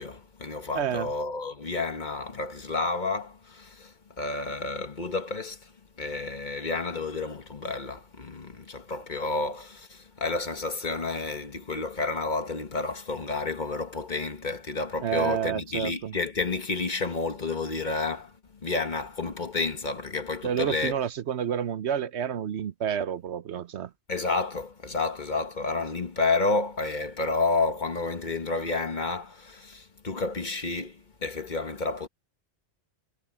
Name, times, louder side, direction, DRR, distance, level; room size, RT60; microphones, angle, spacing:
voice 1, 0.0-5.7 6.0-20.9 24.1-32.1, left 3 dB, 40° left, 1.5 m, -30 dB
voice 2, 0.7-1.1 15.0-16.2 20.4-23.9, right 9 dB, 75° right, 1.1 m, -29 dB
omnidirectional pair, 1.2 m